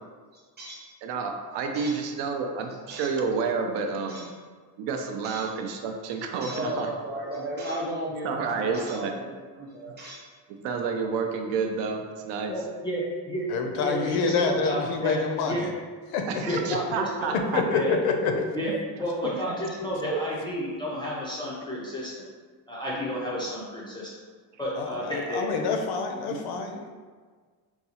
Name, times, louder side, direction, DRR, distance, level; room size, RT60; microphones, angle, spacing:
voice 1, 0.3-0.8 1.7-2.0 2.9-3.1 4.1-4.3 5.2-5.5 6.4-9.3 9.6-10.2, right 1 dB, 25° right, -4 dB, 0.7 m, -35 dB
voice 2, 1.0-4.3 4.8-6.9 8.2-9.2 10.6-12.5 13.8-13.9 16.3-17.6 19.3-19.6 19.8-20.2 26.3-26.4, right 5 dB, 85° right, 4 dB, 0.6 m, -30 dB
voice 3, 12.5-13.5 13.7-15.2 15.4-15.7 16.5-17.4 17.7-18.0 18.5-22.2 22.7-24.1 24.6-25.6, equal, 10° left, -6 dB, 0.3 m, -31 dB
voice 4, 13.5-15.7 16.1-16.6 17.5-18.4 24.8-26.9, left 4 dB, 65° left, 4 dB, 0.5 m, -27 dB
3.9 x 2.3 x 2.8 m, 1.5 s
cardioid pair, 170°, 41 cm